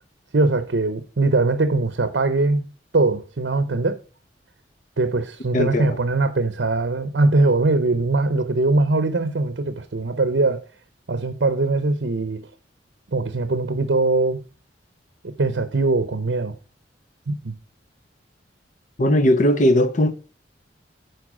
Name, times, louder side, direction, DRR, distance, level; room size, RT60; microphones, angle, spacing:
voice 1, 0.3-2.7 2.9-4.0 5.0-10.6 11.1-12.5 13.1-14.4 15.2-16.6 17.3-17.5, right 3 dB, 70° right, 0.7 m, -21 dB
voice 2, 5.5-6.0 19.0-20.1, left 1 dB, 45° left, 0.8 m, -18 dB
11.0 x 4.6 x 4.9 m
head